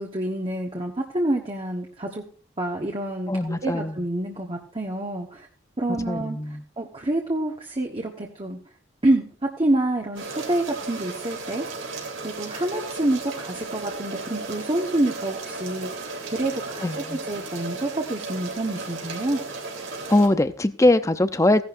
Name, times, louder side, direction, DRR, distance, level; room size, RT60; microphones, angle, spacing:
voice 1, 0.0-2.2 2.6-5.5 5.8-6.4 6.8-8.6 9.0-11.7 12.2-19.4, right 1 dB, 30° right, 1.4 m, -27 dB
voice 2, 3.3-3.9 6.1-6.5 16.8-17.2 20.1-21.6, left 1 dB, 15° left, 0.6 m, -21 dB
sound 1, 10.2-20.3, right 3 dB, 85° right, 3.8 m, -35 dB
16.5 x 11.5 x 2.6 m
head